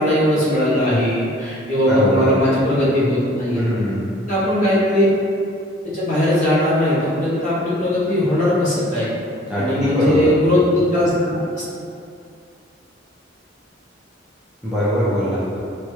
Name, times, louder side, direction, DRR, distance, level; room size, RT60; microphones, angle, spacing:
voice 1, 0.0-3.6 4.3-5.1 5.9-9.1 9.6-11.6, left 1 dB, 40° left, -9 dB, 0.9 m, -19 dB
voice 2, 1.9-2.4 3.5-4.1 9.5-10.3 14.6-15.6, equal, 5° right, -11 dB, 0.5 m, -21 dB
3.2 x 2.2 x 3.0 m, 2.5 s
head